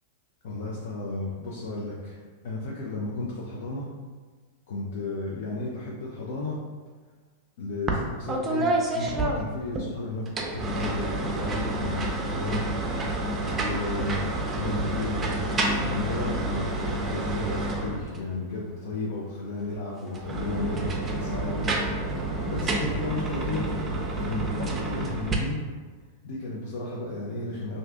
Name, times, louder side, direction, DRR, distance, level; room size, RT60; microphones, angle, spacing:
voice 1, 0.4-3.9 4.7-6.6 7.6-12.6 13.5-14.3 14.5-21.6 22.5-23.7 24.2-25.6 26.2-27.8, left 2 dB, 70° left, -4 dB, 0.5 m, -33 dB
sound 1, 7.9-8.0 8.3-9.9 10.3-18.3 20.1-25.3, right 2 dB, 20° right, 0.5 m, -29 dB
2.6 x 2.4 x 3.3 m, 1.4 s
hypercardioid pair, 115°, 0 cm